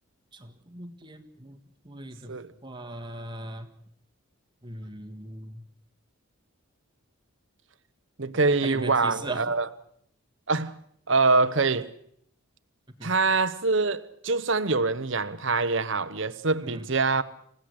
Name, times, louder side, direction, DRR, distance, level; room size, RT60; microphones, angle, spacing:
voice 1, 0.3-1.6 1.8-2.4 2.6-3.7 4.6-5.6 8.6-9.5 13.0-13.1 16.6-16.8, right 2 dB, 20° right, 1.7 m, -38 dB
voice 2, 8.2-9.7 10.5-10.8 11.1-11.9 13.0-17.2, right 3 dB, 60° right, 1.1 m, -24 dB
29.0 x 16.5 x 8.0 m
head